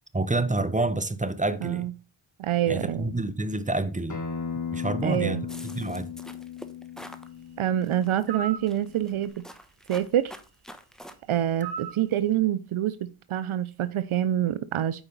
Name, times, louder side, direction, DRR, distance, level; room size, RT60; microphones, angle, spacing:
voice 1, 0.1-1.9 2.7-4.2 4.7-5.4 5.7-6.1, right 2 dB, 15° right, 0.8 m, -28 dB
voice 2, 1.6-1.9 2.4-3.1 5.0-5.4 7.6-9.4 9.9-10.3 11.3-15.0, right 11 dB, 80° right, 0.6 m, -26 dB
Acoustic guitar, 4.1-9.3, left 6 dB, 35° left, 1.7 m, -37 dB
sound 1, 5.5-7.3 7.8-8.3 8.7-11.1, equal, ahead, 1.0 m, -45 dB
sound 2, 8.3-8.7 11.6-12.0, right 6 dB, 50° right, 1.4 m, -34 dB
8.9 x 4.9 x 3.9 m
cardioid pair, 60°, 49 cm